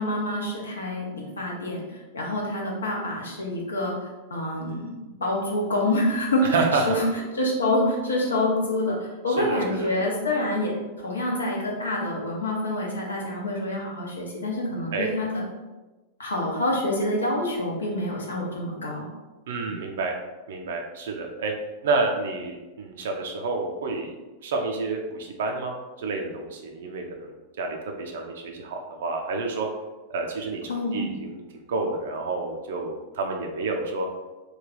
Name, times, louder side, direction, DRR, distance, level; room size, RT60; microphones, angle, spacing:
voice 1, 0.0-3.9 4.3-4.9 5.2-7.1 7.3-15.4 16.2-19.1 19.7-19.8 30.7-31.0, left 1 dB, 70° left, -2 dB, 0.8 m, -27 dB
voice 2, 6.4-7.0 9.3-9.9 14.9-15.1 19.5-20.1 20.5-21.5 21.8-24.1 24.4-29.7 30.1-30.6 30.9-31.4 31.7-34.1, right 3 dB, 60° right, 2 dB, 0.4 m, -29 dB
3.1 x 2.3 x 3.8 m, 1.2 s
figure-of-eight pair, 90°, 0 cm